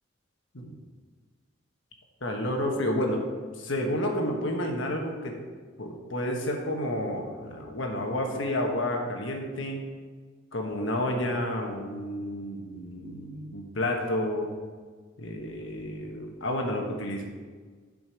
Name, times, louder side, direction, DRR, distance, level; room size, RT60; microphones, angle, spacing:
voice 1, 2.2-3.2 3.6-5.4 5.8-9.8 10.5-14.5 15.2-17.2, left 1 dB, 65° left, 2 dB, 1.3 m, -30 dB
6.2 x 5.2 x 6.4 m, 1.5 s
head